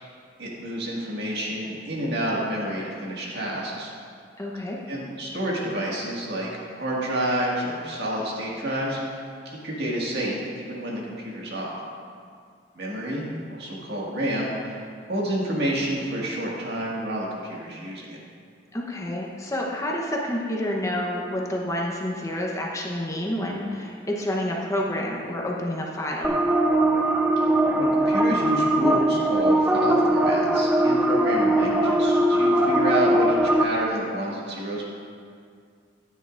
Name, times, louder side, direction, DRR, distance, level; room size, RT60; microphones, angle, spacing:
voice 1, 0.4-3.9 4.9-11.8 12.8-13.2 13.5-18.2 27.8-34.9, right 1 dB, 65° right, -4 dB, 1.9 m, -29 dB
voice 2, 4.4-4.8 18.7-26.4, left 1 dB, 20° left, -2 dB, 0.9 m, -29 dB
sound 1, 26.2-33.6, right 1 dB, 5° right, 0.4 m, -21 dB
12.0 x 9.6 x 2.5 m, 2.2 s
head